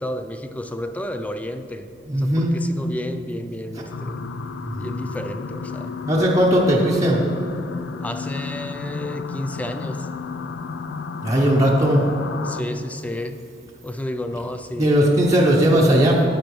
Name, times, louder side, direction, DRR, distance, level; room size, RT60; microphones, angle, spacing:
voice 1, 0.0-1.9 2.2-4.3 4.8-5.9 8.0-10.1 12.4-13.4 13.8-14.9, left 1 dB, 10° left, 8 dB, 0.3 m, -31 dB
voice 2, 2.1-2.9 4.7-4.9 6.1-7.2 11.2-12.0 14.7-16.2, equal, 20° right, -4 dB, 0.8 m, -18 dB
sound 1, 3.9-12.6, left 4 dB, 85° left, 0.4 m, -32 dB
9.9 x 9.0 x 3.1 m, 2.6 s
head